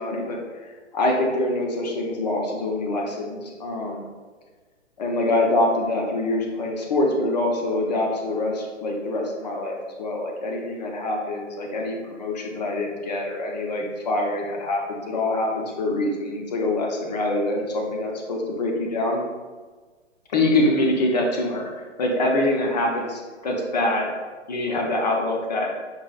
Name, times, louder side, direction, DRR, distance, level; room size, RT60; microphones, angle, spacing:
voice 1, 0.0-4.0 5.0-19.2 20.3-24.1 24.5-25.7, left 2 dB, 35° left, 0 dB, 0.6 m, -25 dB
5.3 x 2.4 x 2.4 m, 1.4 s
hypercardioid pair, 145°, 36 cm